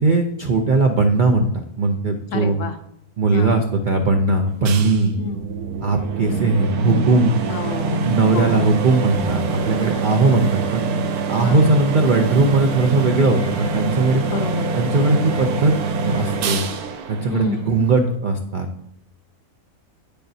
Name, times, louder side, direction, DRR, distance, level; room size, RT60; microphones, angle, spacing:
voice 1, 0.0-2.6 3.2-5.1 5.8-7.4 8.0-10.8 11.3-14.2 14.8-15.7 16.0-16.6 17.1-18.7, right 3 dB, 65° right, 4 dB, 0.4 m, -19 dB
voice 2, 2.3-2.8 3.3-3.6 5.2-5.5 7.5-8.7 10.2-10.5 11.4-11.7 14.3-14.7 17.3-17.7, left 4 dB, 65° left, 8 dB, 0.9 m, -28 dB
sound 1, 4.7-18.2, right 4 dB, 80° right, 1.2 m, -25 dB
8.8 x 6.7 x 2.7 m, 0.76 s
omnidirectional pair, 1.6 m